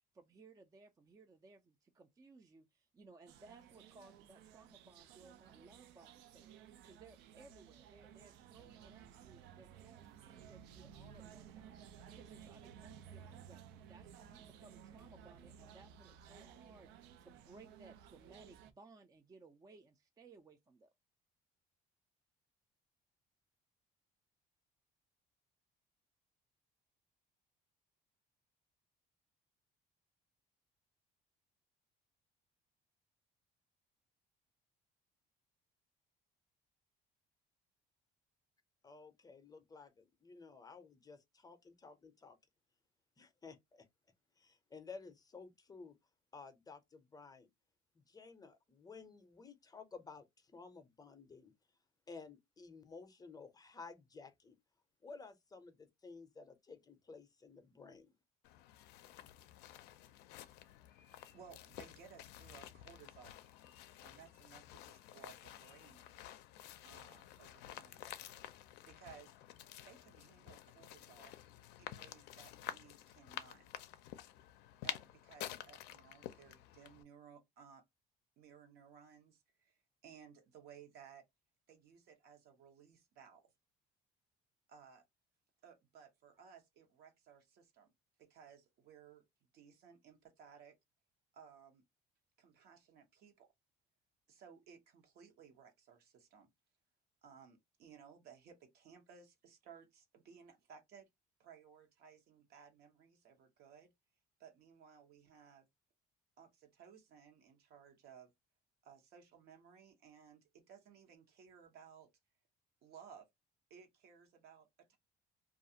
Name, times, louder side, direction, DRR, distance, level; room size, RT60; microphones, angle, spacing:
voice 1, 0.1-6.6 6.8-20.9, right 3 dB, 20° right, 0.4 m, -61 dB
sound 1, 3.3-18.7, right 8 dB, 90° right, 0.4 m, -57 dB
voice 2, 38.8-42.4 43.2-43.9 44.4-46.0 46.3-47.5 48.1-51.5 52.1-54.6 55.0-58.1, left 4 dB, 20° left, 0.6 m, -54 dB
sound 2, 58.4-77.0, left 12 dB, 85° left, 0.4 m, -51 dB
voice 3, 61.3-63.4 64.0-66.0 66.8-68.0 68.8-69.3 69.8-71.3 71.8-73.8 74.8-77.8 78.4-81.2 81.7-83.5 84.7-85.0 85.6-87.9 88.2-89.2 89.5-90.8 91.3-91.8 92.4-93.5 94.3-96.5 97.2-101.1 101.4-103.9 104.4-105.7 106.4-108.3 108.8-112.1 112.8-113.3 113.7-115.0, right 7 dB, 70° right, 0.9 m, -59 dB
2.4 x 2.4 x 2.7 m
cardioid pair, 100°, 17 cm